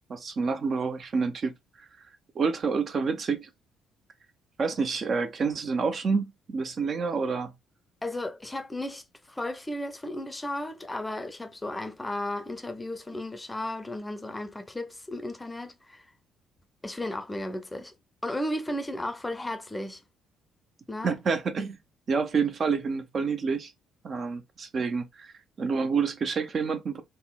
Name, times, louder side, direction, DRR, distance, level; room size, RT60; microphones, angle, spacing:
voice 1, 0.1-1.5 1.8-2.1 2.4-3.5 4.6-7.5 21.0-21.8 22.1-23.7 24.0-25.3 25.6-27.0, right 5 dB, 45° right, 0.5 m, -28 dB
voice 2, 8.0-16.0 16.8-17.9 18.2-20.0 20.9-21.2, left 1 dB, 15° left, 0.5 m, -34 dB
3.6 x 2.0 x 2.2 m
figure-of-eight pair, 45°, 0 cm